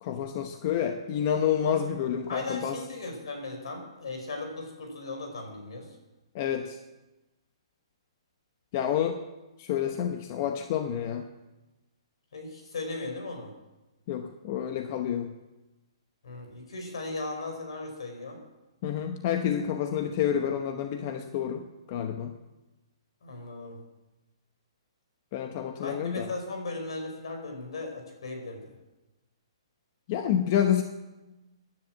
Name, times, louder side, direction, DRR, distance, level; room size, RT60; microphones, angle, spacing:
voice 1, 0.0-2.8 6.3-6.8 8.7-9.2 9.6-11.3 14.1-15.3 18.8-22.3 25.3-26.3 30.1-30.8, left 9 dB, 25° left, 6 dB, 0.9 m, -29 dB
voice 2, 2.3-5.9 12.3-13.5 16.2-18.4 23.2-23.8 25.8-28.7, left 3 dB, 65° left, 4 dB, 5.6 m, -37 dB
17.0 x 11.0 x 7.7 m, 1.1 s
hypercardioid pair, 175°, 3 cm